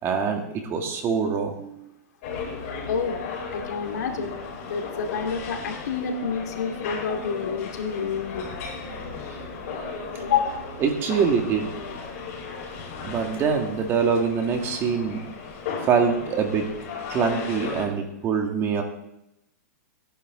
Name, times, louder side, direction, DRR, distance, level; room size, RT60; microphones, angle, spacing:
voice 1, 0.0-1.7 10.8-11.7 13.0-15.3 15.8-16.6 17.1-18.8, right 6 dB, 25° right, 3 dB, 2.0 m, -24 dB
sound 1, 2.2-17.9, left 5 dB, 50° left, 4.9 m, -36 dB
voice 2, 3.5-4.4 4.6-8.5 10.2-10.7, left 6 dB, 75° left, 3 dB, 2.3 m, -28 dB
17.5 x 10.5 x 3.9 m, 0.84 s
hypercardioid pair, 145°, 9 cm